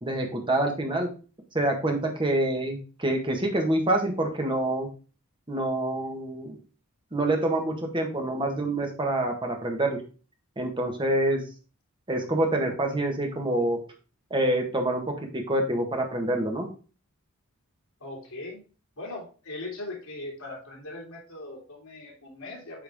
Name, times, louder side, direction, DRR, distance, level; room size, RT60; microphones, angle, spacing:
voice 1, 0.0-1.1 1.5-4.9 5.5-6.6 7.1-10.0 10.6-11.4 12.1-13.8 14.3-16.7, right 1 dB, 20° right, 3 dB, 1.5 m, -26 dB
voice 2, 18.0-18.6 19.0-22.8, left 2 dB, 70° left, -3 dB, 2.7 m, -39 dB
8.6 x 4.7 x 3.6 m, 0.35 s
head